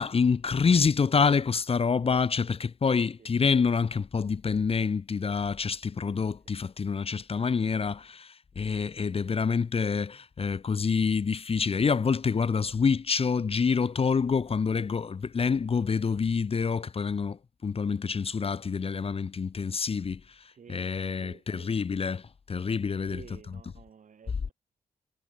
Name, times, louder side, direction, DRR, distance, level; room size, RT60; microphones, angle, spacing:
voice 1, 0.0-20.2 20.7-23.7, left 5 dB, 45° left, 0.8 m, -27 dB
voice 2, 20.5-20.9 21.2-22.0 23.1-24.5, right 7 dB, 60° right, 5.8 m, -52 dB
supercardioid pair, 50°, 14 cm